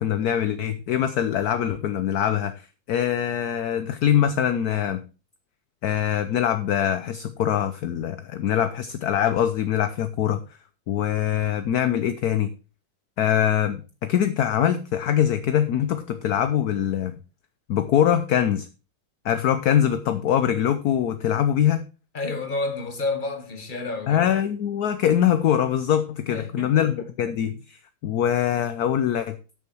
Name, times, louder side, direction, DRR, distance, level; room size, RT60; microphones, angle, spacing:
voice 1, 0.0-5.0 5.8-10.4 10.9-12.5 13.2-17.2 17.7-18.7 19.2-21.8 24.1-29.4, left 10 dB, 65° left, 1.1 m, -23 dB
voice 2, 22.1-24.3 26.3-26.8, left 3 dB, 25° left, 1.7 m, -30 dB
12.5 x 6.9 x 4.6 m
omnidirectional pair, 2.1 m